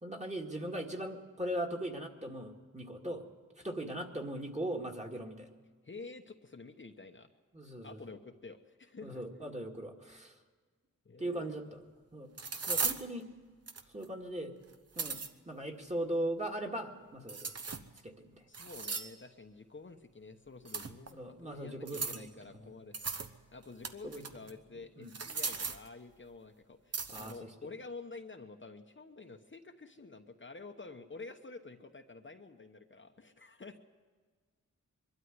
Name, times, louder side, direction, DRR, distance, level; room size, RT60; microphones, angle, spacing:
voice 1, 0.0-3.2 3.6-5.5 7.5-8.0 9.0-10.3 11.2-11.8 12.1-12.3 12.7-13.3 13.9-14.5 15.0-15.2 15.5-17.5 18.0-18.4 21.1-22.3 24.0-24.2 25.0-25.1 27.1-27.5, right 1 dB, 20° right, 1 dB, 2.1 m, -39 dB
voice 2, 5.8-7.3 7.8-9.2 11.0-11.5 18.5-23.0 23.5-33.8, left 3 dB, 35° left, 4 dB, 1.0 m, -49 dB
sound 1, 11.4-11.5 12.4-13.0 13.7-14.0 14.7-15.3 17.3-18.0 18.5-19.2 20.6-21.1 21.9-22.3 22.9-23.3 23.6-24.5 25.1-25.9 26.9-27.4, right 4 dB, 50° right, 1.1 m, -37 dB
23.0 x 13.0 x 9.7 m, 1.5 s
wide cardioid pair, 120°, 32 cm